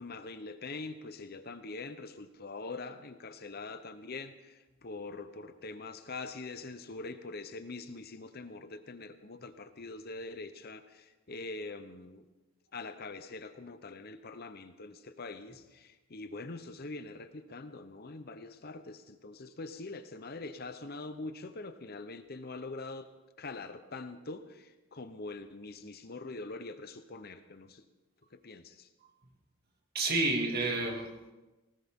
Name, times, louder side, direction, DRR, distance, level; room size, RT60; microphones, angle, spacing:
voice 1, 0.0-12.2 12.7-23.1 23.4-27.8 28.3-28.9, left 3 dB, 45° left, 10 dB, 0.8 m, -43 dB
voice 2, 29.9-31.3, right 2 dB, 45° right, 2 dB, 2.1 m, -30 dB
19.5 x 18.0 x 3.7 m, 1.1 s
head